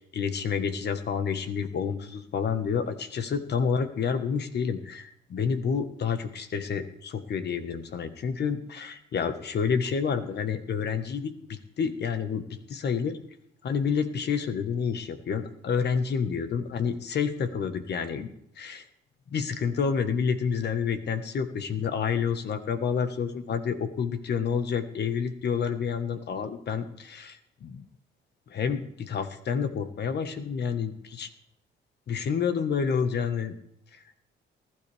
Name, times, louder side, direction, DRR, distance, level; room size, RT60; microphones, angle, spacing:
voice 1, 0.0-13.2 13.6-18.3 18.6-18.8 19.3-27.8 28.5-31.3 32.1-33.5 33.9-34.0, left 6 dB, 55° left, 9 dB, 1.5 m, -29 dB
20.0 x 12.0 x 3.5 m, 0.71 s
cardioid pair, 90°, 20 cm